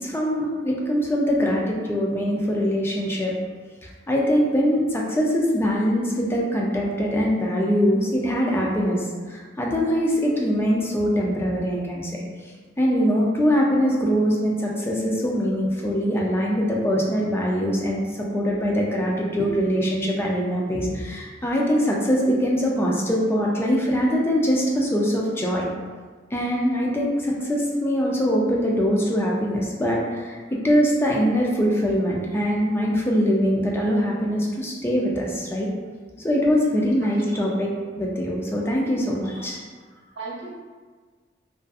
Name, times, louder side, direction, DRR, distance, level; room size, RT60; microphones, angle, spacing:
voice 1, 0.0-3.3 4.1-12.2 12.8-18.0 18.3-25.7 26.3-35.7 36.2-37.7 38.0-39.6, equal, 15° left, -2 dB, 0.3 m, -23 dB
voice 2, 37.0-37.5 40.1-40.5, right 3 dB, 80° right, -5 dB, 0.7 m, -37 dB
2.5 x 2.4 x 2.3 m, 1.5 s
head